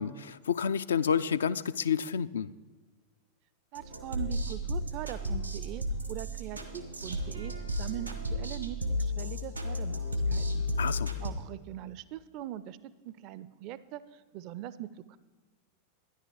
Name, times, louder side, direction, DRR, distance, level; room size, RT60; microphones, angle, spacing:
voice 1, 0.0-2.5 10.8-11.1, left 7 dB, 65° left, 15 dB, 0.3 m, -29 dB
voice 2, 3.7-10.0 10.3-10.6 11.2-12.8 13.0-15.2, right 12 dB, 40° right, 16 dB, 0.4 m, -42 dB
sound 1, 3.7-11.3, left 1 dB, 90° right, 1.2 m, -33 dB
12.0 x 10.0 x 4.7 m, 1.4 s
figure-of-eight pair, 90°, 0 cm